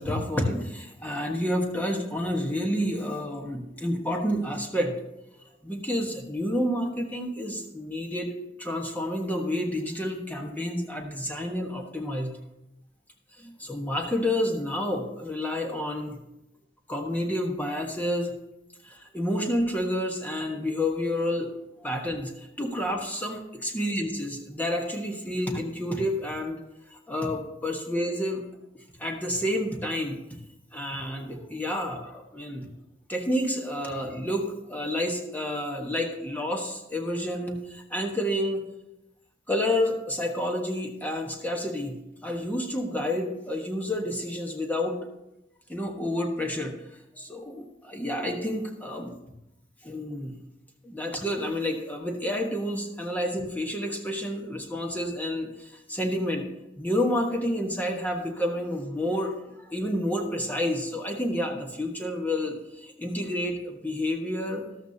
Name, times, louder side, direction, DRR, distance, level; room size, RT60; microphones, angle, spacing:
voice 1, 0.0-5.0 5.6-12.4 13.4-16.2 16.9-18.3 18.8-21.5 21.8-26.6 27.1-28.4 29.0-30.2 30.7-32.7 33.1-38.6 39.5-45.0 45.7-46.8 47.2-49.1 49.8-50.4 50.8-55.5 55.9-56.5 56.8-59.3 59.7-64.7, left 1 dB, 10° left, 1 dB, 1.3 m, -29 dB
13.0 x 12.5 x 2.8 m, 0.90 s
head